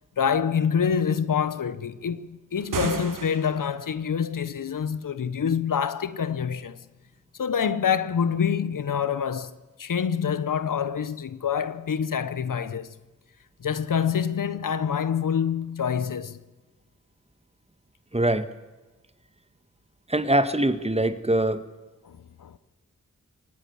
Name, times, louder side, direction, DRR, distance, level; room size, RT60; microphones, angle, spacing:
voice 1, 0.2-6.8 7.4-12.9 13.6-16.4 22.0-22.6, left 7 dB, 85° left, 1.1 m, -26 dB
sound 1, 2.6-3.9, right 6 dB, 90° right, 1.3 m, -33 dB
voice 2, 18.1-18.5 20.1-21.6, right 1 dB, 20° right, 1.8 m, -23 dB
23.5 x 19.0 x 7.2 m
cardioid pair, 50°, 31 cm